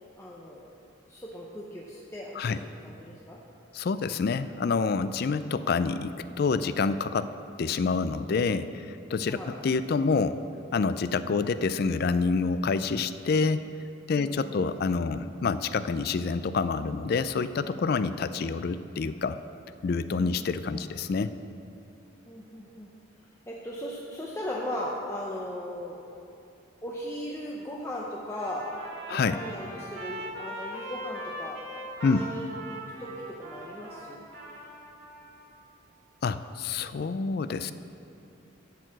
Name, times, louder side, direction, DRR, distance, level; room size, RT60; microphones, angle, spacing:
voice 1, 0.2-0.7 1.1-3.4 9.3-9.6 14.1-14.9 17.9-18.0 20.2-20.6 22.3-22.9 23.5-26.0 26.8-31.6 32.0-34.2, equal, 15° left, -4 dB, 0.6 m, -38 dB
voice 2, 3.7-7.3 7.6-10.4 10.7-13.6 14.1-19.4 19.8-21.3 29.1-29.4 32.0-32.3 36.2-37.7, left 4 dB, 50° left, 13 dB, 0.3 m, -27 dB
Trumpet, 28.3-35.4, equal, 55° right, 1.8 m, -41 dB
12.5 x 4.6 x 7.3 m, 2.7 s
head